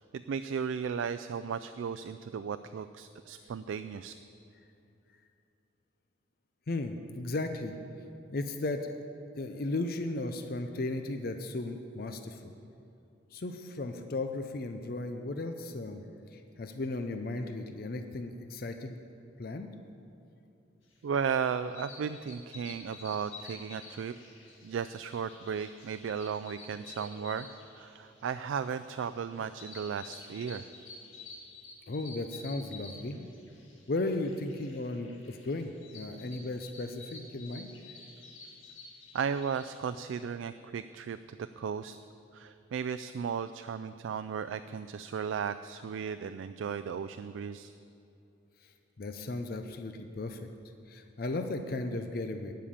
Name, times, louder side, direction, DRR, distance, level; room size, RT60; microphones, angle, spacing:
voice 1, 0.0-4.1 21.0-24.1 24.6-27.5 27.7-30.6 39.1-42.0 42.3-47.7, right 6 dB, 75° right, 11 dB, 0.3 m, -35 dB
voice 2, 6.7-7.8 8.3-9.0 9.4-12.5 13.3-16.0 16.3-19.0 19.4-19.7 31.9-33.3 33.9-37.7 49.0-50.4 50.9-52.5, left 2 dB, 50° left, 7 dB, 0.5 m, -35 dB
sound 1, 21.1-39.8, left 3 dB, 85° left, 1.8 m, -51 dB
12.5 x 5.7 x 8.6 m, 2.7 s
head